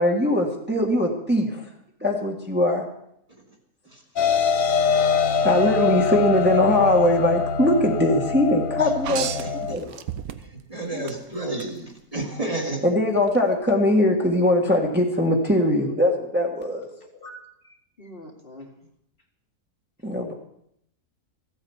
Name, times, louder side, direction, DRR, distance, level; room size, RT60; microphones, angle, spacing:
voice 1, 0.0-1.6 2.0-2.8 5.4-9.3 9.6-10.0 10.9-11.0 12.8-16.9 20.0-20.3, left 1 dB, 5° right, -1 dB, 1.6 m, -21 dB
sound 1, 4.2-9.7, left 6 dB, 60° left, 1.3 m, -23 dB
sound 2, 9.0-10.7 11.1-11.7 13.3-13.4, right 10 dB, 75° right, 1.1 m, -32 dB
voice 2, 9.1-9.5 10.7-12.8, right 2 dB, 25° right, 1 dB, 1.9 m, -30 dB
voice 3, 17.0-18.7, equal, 40° left, 1 dB, 1.9 m, -45 dB
14.5 x 9.0 x 7.1 m, 0.74 s
omnidirectional pair, 1.6 m